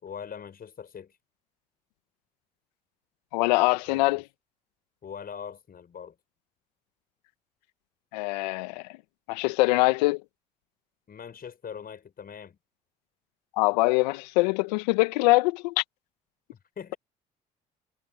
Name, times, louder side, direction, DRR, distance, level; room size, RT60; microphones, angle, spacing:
voice 1, 0.0-1.1 3.9-4.0 5.0-6.1 11.1-12.6 16.8-17.0, left 7 dB, 45° left, 5.7 m, -41 dB
voice 2, 3.3-4.2 8.1-8.9 9.3-10.2 13.6-15.8, left 22 dB, 80° left, 1.7 m, -23 dB
hypercardioid pair, 55°, 21 cm